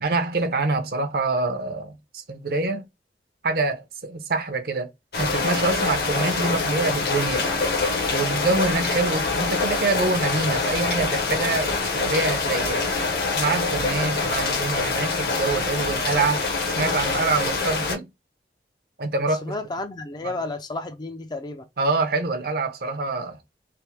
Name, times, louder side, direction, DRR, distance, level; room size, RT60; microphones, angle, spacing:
voice 1, 0.0-2.9 3.4-4.9 5.2-7.4 8.1-12.9 13.3-16.5 16.7-18.1 19.0-19.5 20.2-20.3 21.8-23.4, right 3 dB, 55° right, 0.7 m, -25 dB
sound 1, 5.1-18.0, left 3 dB, 60° left, 0.9 m, -25 dB
voice 2, 19.4-21.7, left 2 dB, 25° left, 0.4 m, -32 dB
3.4 x 2.1 x 2.9 m
head